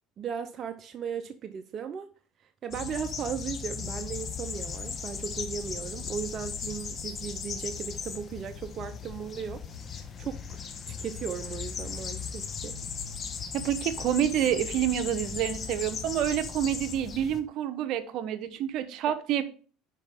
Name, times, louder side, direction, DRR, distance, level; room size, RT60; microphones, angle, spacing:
voice 1, 0.2-2.1 2.6-12.8, right 7 dB, 40° right, 0.7 m, -37 dB
sound 1, 2.7-17.4, left 6 dB, 35° left, 1.2 m, -37 dB
voice 2, 13.5-19.4, right 10 dB, 60° right, 1.0 m, -28 dB
9.8 x 5.0 x 3.6 m
supercardioid pair, 100°, 0 cm